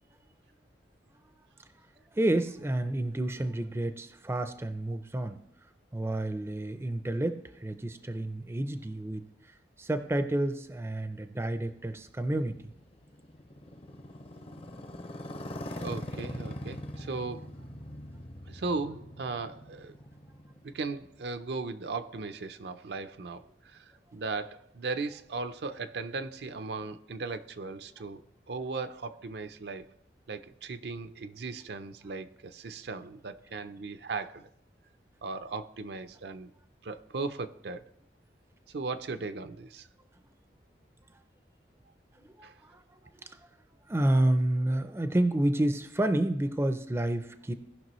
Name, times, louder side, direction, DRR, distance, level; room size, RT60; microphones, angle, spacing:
voice 1, 2.1-5.4 5.9-9.3 9.8-12.7 42.2-42.8 43.2-43.5 43.9-47.5, right 1 dB, 15° right, 0.4 m, -30 dB
Motorcycle, 11.7-21.4, left 1 dB, 35° left, 0.6 m, -43 dB
voice 2, 15.8-17.5 18.5-19.9 20.6-28.2 28.5-29.9 30.3-34.5 35.2-36.5 36.8-37.9 38.7-39.9 42.4-42.5, right 3 dB, 70° right, 0.5 m, -37 dB
17.5 x 5.9 x 3.1 m
head